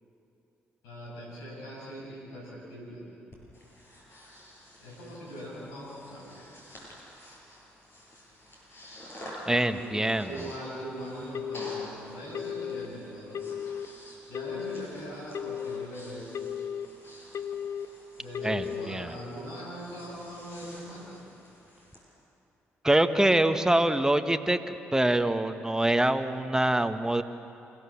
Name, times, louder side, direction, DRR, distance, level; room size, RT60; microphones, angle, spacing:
voice 1, 0.8-3.0 4.8-6.4 9.7-13.8 14.3-16.7 18.2-21.2, equal, 85° left, -4 dB, 7.3 m, -41 dB
Breathing, 3.3-22.0, equal, 40° left, 7.9 m, -50 dB
voice 2, 9.5-10.5 18.4-19.1 22.8-27.2, right 1 dB, 10° right, 9 dB, 1.4 m, -25 dB
Telephone, 11.3-11.9 12.3-12.9 13.3-13.9 14.3-14.9 15.3-15.9 16.3-16.9 17.3-17.9 18.3-18.9, left 8 dB, 60° left, 1.0 m, -35 dB
28.0 x 17.0 x 7.2 m, 2.7 s
hypercardioid pair, 50°, 6 cm